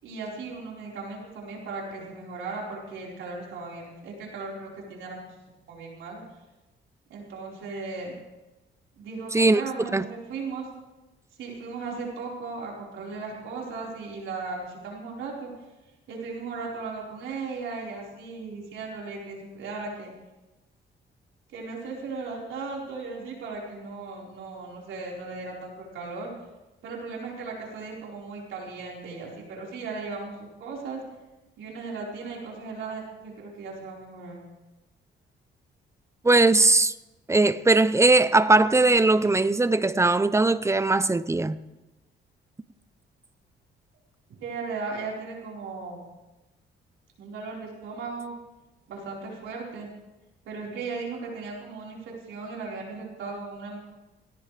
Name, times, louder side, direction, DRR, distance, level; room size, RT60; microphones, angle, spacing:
voice 1, 0.0-5.2 5.7-6.2 7.1-8.1 9.0-10.7 11.4-15.5 16.1-20.1 21.5-26.3 26.8-31.0 31.6-34.4 44.3-46.0 47.2-48.3 48.9-49.9 50.4-53.8, right 4 dB, 80° right, 4.6 m, -37 dB
voice 2, 36.2-36.9 37.3-41.6, right 2 dB, 15° right, 0.6 m, -20 dB
18.0 x 17.5 x 3.4 m
cardioid pair, 90°, 20 cm